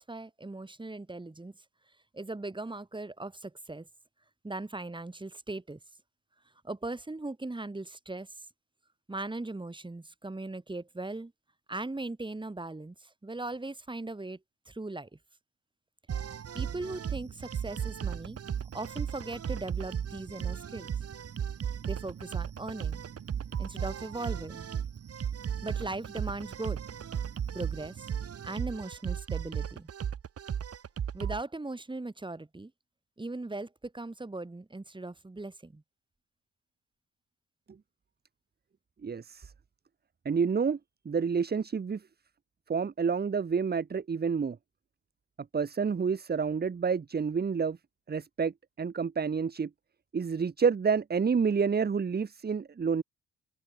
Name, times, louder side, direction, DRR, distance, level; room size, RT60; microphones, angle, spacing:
voice 1, 0.0-1.6 2.1-3.9 4.4-5.8 6.6-8.3 9.1-11.3 11.7-14.4 14.7-15.1 16.5-18.4 18.7-21.1 21.8-23.0 23.6-24.7 25.6-26.8 27.5-28.0 28.4-29.9 31.1-32.7 33.2-35.8, right 2 dB, 15° right, 6.6 m, -39 dB
sound 1, 16.1-31.4, right 8 dB, 50° right, 3.8 m, -35 dB
voice 2, 39.0-39.5 40.2-40.8 41.0-42.0 42.7-44.6 45.5-47.8 48.1-48.5 48.8-49.7 50.1-53.0, right 6 dB, 30° right, 1.6 m, -28 dB
open air
cardioid pair, 90°, 30 cm